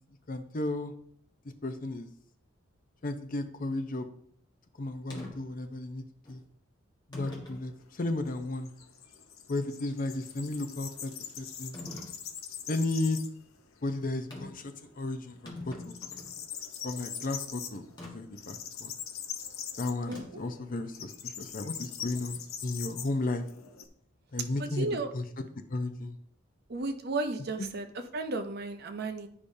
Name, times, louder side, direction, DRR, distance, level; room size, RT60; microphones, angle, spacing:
voice 1, 0.3-0.9 1.6-2.1 3.0-4.1 4.8-6.4 7.1-8.7 9.5-11.1 11.4-11.8 12.7-13.2 13.8-16.0 16.8-18.9 19.8-23.4 24.3-25.4 25.7-26.2 27.6-27.7, left 2 dB, 40° left, 8 dB, 0.6 m, -34 dB
sound 1, 5.1-5.3 6.2-6.4 7.1-7.6 8.3-8.4 11.7-12.1 14.3-14.7 15.0-15.1 15.3-16.4 18.0-18.1 20.1-20.5, left 1 dB, 20° left, 1.4 m, -43 dB
sound 2, 7.6-13.5 13.8-13.9 14.3-15.1 15.4-23.9, left 8 dB, 85° left, 0.7 m, -42 dB
voice 2, 24.6-25.1 26.7-27.8 28.1-29.3, right 3 dB, 50° right, 7 dB, 0.6 m, -33 dB
9.9 x 5.0 x 2.7 m, 0.66 s
head